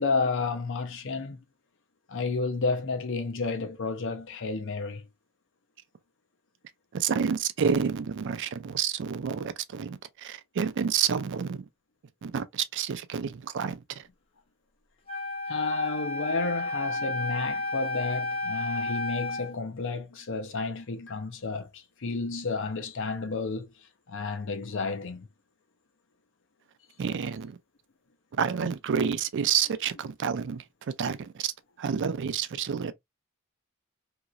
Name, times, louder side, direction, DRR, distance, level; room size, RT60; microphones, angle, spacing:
voice 1, 0.0-1.4 2.1-5.1 15.5-23.7 24.1-25.3, left 4 dB, 60° left, 0.6 m, -31 dB
voice 2, 6.9-11.6 12.2-13.8 27.0-27.5 28.4-30.6 31.0-31.5 31.8-32.9, right 7 dB, 60° right, 0.4 m, -29 dB
Wind instrument woodwind instrument, 15.1-19.5, left 2 dB, 25° left, 1.0 m, -32 dB
2.9 x 2.9 x 2.4 m
head